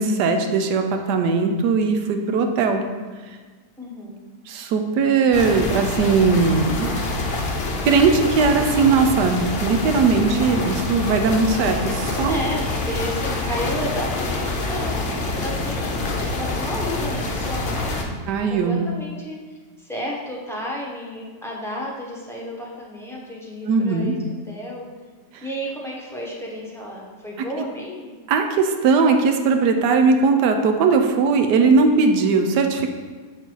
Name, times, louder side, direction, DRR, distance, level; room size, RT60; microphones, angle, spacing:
voice 1, 0.0-2.8 4.5-7.0 7.8-12.4 18.3-18.8 23.7-24.1 25.3-25.4 28.3-32.9, right 4 dB, 85° right, 5 dB, 1.3 m, -19 dB
voice 2, 3.8-4.2 12.2-15.0 15.4-18.2 18.5-24.1 24.4-24.8 25.4-28.1, equal, ahead, -4 dB, 0.9 m, -32 dB
sound 1, 5.3-18.0, left 2 dB, 50° left, 0.8 m, -26 dB
7.9 x 4.0 x 4.6 m, 1.4 s
omnidirectional pair, 1.8 m